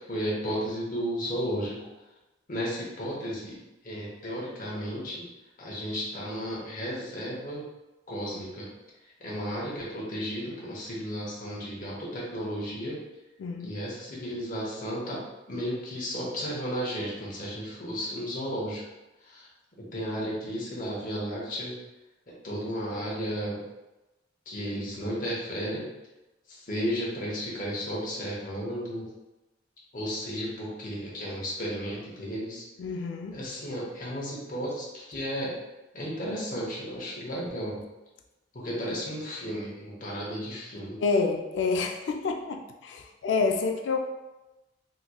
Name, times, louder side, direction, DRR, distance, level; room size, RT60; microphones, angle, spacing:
voice 1, 0.1-1.8 2.5-5.3 5.6-7.6 8.1-8.7 9.2-13.0 13.6-15.2 15.5-18.8 19.2-19.5 19.8-21.8 22.3-23.6 24.5-25.9 26.5-29.0 29.9-32.7 33.3-35.5 35.9-37.8 38.5-41.0, equal, 45° left, -5 dB, 0.9 m, -33 dB
voice 2, 13.4-13.7 32.8-33.4 41.0-44.0, left 4 dB, 80° left, 4 dB, 0.3 m, -28 dB
3.7 x 2.9 x 2.2 m, 1.0 s
head